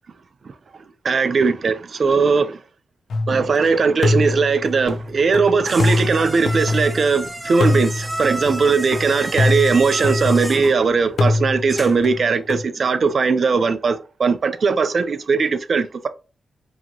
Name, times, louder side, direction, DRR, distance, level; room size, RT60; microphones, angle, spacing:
voice 1, 1.0-2.6 3.3-16.1, right 5 dB, 60° right, 0.6 m, -19 dB
sound 1, 3.1-3.6 4.0-7.2 7.6-10.8 11.2-12.6, left 2 dB, 75° left, 0.7 m, -23 dB
sound 2, 4.9-12.1, right 1 dB, 15° right, 0.8 m, -32 dB
4.9 x 3.0 x 2.9 m
cardioid pair, 60°, 0 cm